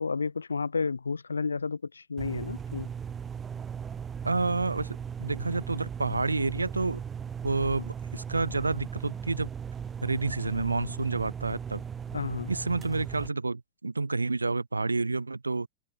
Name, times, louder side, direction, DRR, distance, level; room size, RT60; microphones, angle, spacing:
voice 1, 0.0-2.9 12.1-12.5, left 4 dB, 75° left, 3.3 m, -31 dB
sound 1, 2.2-13.3, right 7 dB, 20° right, 2.2 m, -38 dB
voice 2, 4.2-7.0 7.4-9.5 10.0-11.8 12.5-15.7, right 3 dB, 80° right, 2.0 m, -29 dB
open air
figure-of-eight pair, 90°, 0 cm